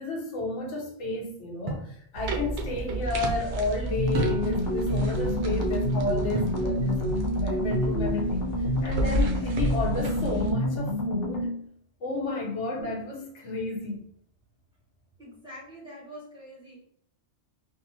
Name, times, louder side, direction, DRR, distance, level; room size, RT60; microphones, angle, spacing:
voice 1, 0.0-11.6 12.0-14.0, left 3 dB, 85° left, 1 dB, 1.1 m, -32 dB
sound 1, 1.7-2.0 4.1-4.8 6.3-6.7 8.7-9.3, right 2 dB, 40° right, 0.6 m, -32 dB
sound 2, 2.1-10.5, right 2 dB, 80° right, 0.9 m, -31 dB
sound 3, 4.0-11.6, left 1 dB, 55° left, 1.0 m, -28 dB
voice 2, 15.2-16.8, equal, 5° right, -7 dB, 1.4 m, -45 dB
3.5 x 2.5 x 2.8 m, 0.69 s
omnidirectional pair, 1.2 m